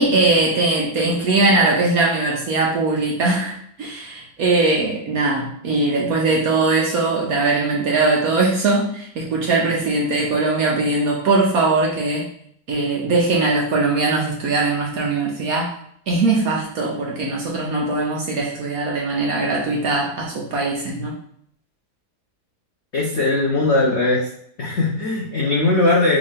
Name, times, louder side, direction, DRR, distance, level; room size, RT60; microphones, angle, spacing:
voice 1, 0.0-12.3 12.7-15.7 16.1-21.1, right 3 dB, 65° right, -2 dB, 0.9 m, -20 dB
voice 2, 22.9-24.3 24.6-26.2, left 2 dB, 90° left, -3 dB, 0.6 m, -19 dB
3.7 x 2.6 x 3.4 m, 0.65 s
omnidirectional pair, 2.1 m